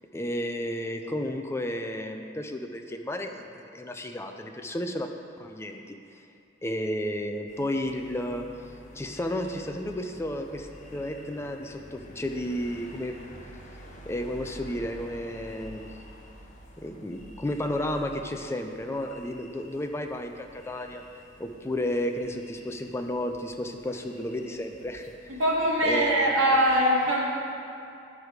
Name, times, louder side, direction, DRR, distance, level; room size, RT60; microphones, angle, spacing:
voice 1, 0.1-5.1 5.4-6.0 6.6-8.5 8.9-13.2 14.1-15.9 16.8-21.0 21.4-25.4 25.8-26.3, left 1 dB, 15° left, 5 dB, 0.4 m, -32 dB
sound 1, 7.5-26.5, equal, 40° left, 1.0 m, -49 dB
voice 2, 25.3-27.3, equal, 85° right, -3 dB, 1.5 m, -22 dB
11.0 x 4.8 x 4.8 m, 2.5 s
head